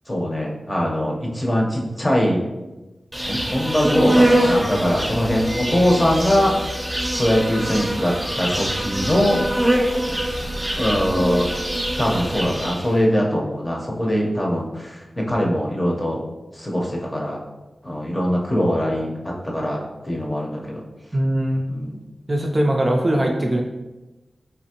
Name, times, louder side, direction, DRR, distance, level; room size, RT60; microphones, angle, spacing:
voice 1, 0.1-2.4 3.3-6.5 7.2-9.4 10.8-11.5 12.0-16.2 16.5-17.4 17.8-19.1 19.4-20.8 21.7-22.0, equal, 25° left, -2 dB, 0.8 m, -22 dB
Insect, 3.1-13.0, right 1 dB, 15° right, 0.8 m, -23 dB
voice 2, 21.1-21.6 22.3-23.6, right 1 dB, 35° right, 1 dB, 0.4 m, -20 dB
3.5 x 2.8 x 2.9 m, 1.1 s
cardioid pair, 55°, 0 cm